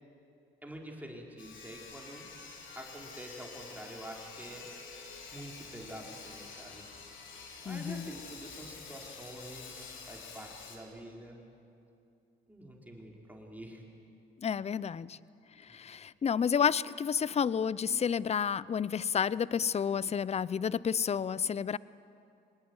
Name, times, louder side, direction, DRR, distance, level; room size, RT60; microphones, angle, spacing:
voice 1, 0.6-2.3 2.7-4.7 5.3-6.9 7.6-9.8 10.1-11.4 12.5-13.9, right 1 dB, 10° right, -1 dB, 4.5 m, -47 dB
Sawing, 1.4-10.8, left 5 dB, 80° left, 3.7 m, -48 dB
voice 2, 7.7-8.1 14.4-15.2 15.7-21.8, left 7 dB, 30° left, 20 dB, 0.6 m, -30 dB
24.5 x 19.5 x 9.7 m, 2.6 s
cardioid pair, 90°, 20 cm